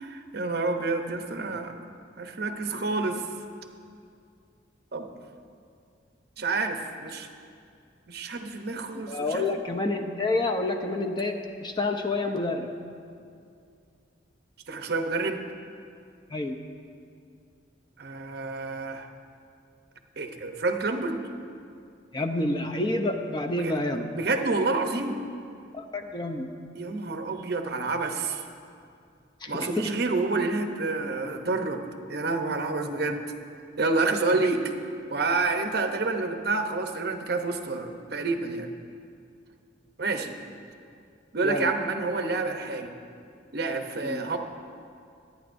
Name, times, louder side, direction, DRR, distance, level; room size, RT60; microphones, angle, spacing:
voice 1, 0.0-1.7 2.2-3.3 4.9-5.1 6.4-7.3 8.1-9.4 14.7-15.4 18.0-19.1 20.2-21.2 23.6-23.7 24.2-25.2 26.7-28.4 29.5-31.8 32.1-33.2 33.8-34.6 35.1-38.7 40.0-40.4 41.3-42.9 43.5-44.4, right 3 dB, 60° right, 5 dB, 0.8 m, -28 dB
voice 2, 8.9-12.7 16.3-16.6 22.1-24.1 25.7-26.5 29.4-29.9 41.4-41.7 44.0-44.3, left 2 dB, 25° left, 4 dB, 0.6 m, -29 dB
23.0 x 9.1 x 2.6 m, 2.4 s
head